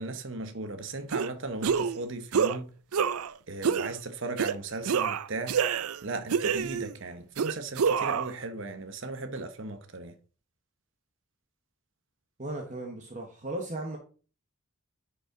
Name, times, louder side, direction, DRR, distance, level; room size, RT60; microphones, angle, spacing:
voice 1, 0.0-2.7 3.5-5.5 6.0-10.1, right 2 dB, 60° right, 0.9 m, -36 dB
sound 1, 1.1-1.3 1.6-2.0 2.3-2.6 2.9-3.3 3.6-3.9 4.4-4.5 4.8-6.0 6.3-6.9 7.4-8.3, right 6 dB, 90° right, 0.5 m, -27 dB
voice 2, 12.4-14.0, right 1 dB, 35° right, 1.2 m, -36 dB
11.0 x 5.5 x 3.8 m
head